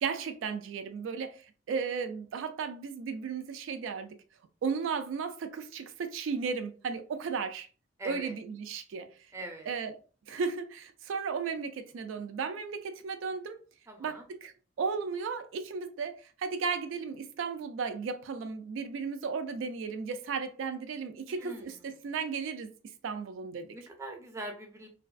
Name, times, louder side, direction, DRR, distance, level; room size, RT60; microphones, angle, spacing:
voice 1, 0.0-4.2 4.6-7.7 8.0-9.1 9.7-9.9 10.3-13.6 14.0-14.5 14.8-22.7 23.0-23.8, right 5 dB, 85° right, 0.3 m, -35 dB
voice 2, 8.0-8.3 9.3-9.7 13.9-14.2 21.3-21.7 23.7-24.9, right 1 dB, 15° right, 0.4 m, -42 dB
2.3 x 2.3 x 2.3 m
head